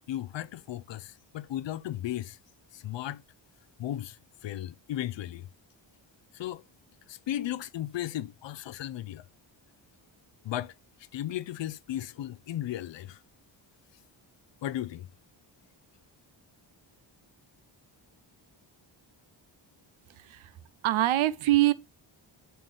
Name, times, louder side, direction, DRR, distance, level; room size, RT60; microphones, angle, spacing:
voice 1, 0.1-2.4 2.7-3.2 3.8-5.5 6.3-6.6 7.1-9.2 10.4-10.7 11.1-13.2 14.6-15.1, left 12 dB, 65° left, 0.6 m, -35 dB
voice 2, 20.1-20.5 20.8-21.7, right 15 dB, 85° right, 0.7 m, -24 dB
7.5 x 3.9 x 3.2 m
cardioid pair, 80°, 47 cm